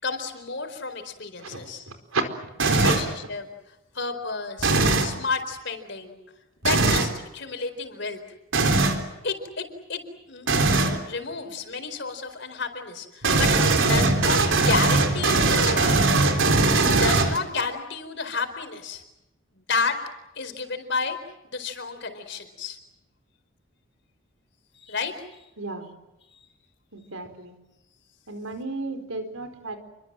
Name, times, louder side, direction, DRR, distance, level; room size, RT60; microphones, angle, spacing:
voice 1, 0.0-1.9 2.7-4.7 5.0-6.2 6.6-8.2 9.2-10.0 10.3-16.1 16.9-19.0 19.5-20.0 20.3-22.8 24.7-25.5 26.3-26.5, left 4 dB, 55° left, 8 dB, 4.4 m, -31 dB
voice 2, 1.4-1.7 2.1-2.2 2.6-2.9 25.6-25.9 26.9-27.5 28.3-29.8, right 3 dB, 85° right, 8 dB, 4.5 m, -32 dB
sound 1, 2.6-3.1 4.6-5.1 6.6-7.1 8.5-9.0 10.5-11.0 13.2-17.6, right 3 dB, 65° right, 3.6 m, -20 dB
29.0 x 23.5 x 7.6 m, 0.96 s
head